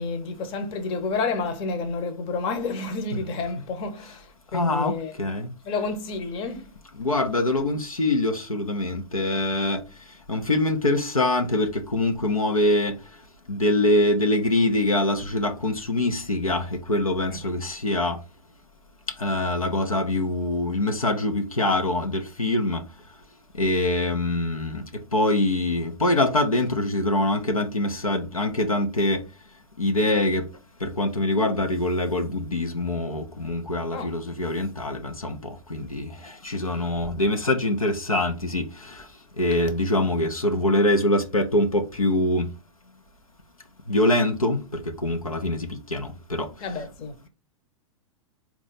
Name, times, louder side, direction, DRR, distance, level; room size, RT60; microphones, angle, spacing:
voice 1, 0.0-5.1 5.6-6.8 17.3-17.4 33.9-34.1 46.6-47.3, left 4 dB, 30° left, 0.8 m, -30 dB
voice 2, 4.5-5.5 7.0-9.8 10.3-12.9 13.5-18.2 19.2-22.8 23.6-24.8 25.1-29.2 29.8-30.4 30.8-35.4 35.7-36.1 36.4-38.7 39.4-42.5 43.9-46.5, left 1 dB, 85° left, 0.6 m, -24 dB
3.9 x 2.4 x 3.9 m
figure-of-eight pair, 100°, 18 cm